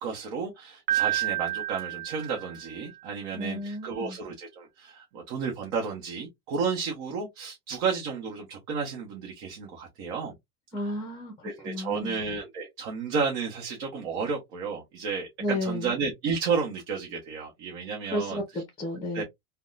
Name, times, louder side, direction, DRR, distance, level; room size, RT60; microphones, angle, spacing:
voice 1, 0.0-10.4 11.4-18.4 19.1-19.2, right 5 dB, 50° right, 1.0 m, -32 dB
Piano, 0.9-3.0, right 14 dB, 90° right, 0.9 m, -30 dB
voice 2, 3.3-4.2 10.7-12.2 15.4-15.9 18.1-19.2, left 1 dB, 10° left, 0.7 m, -32 dB
3.4 x 2.3 x 2.4 m
supercardioid pair, 170°, 43 cm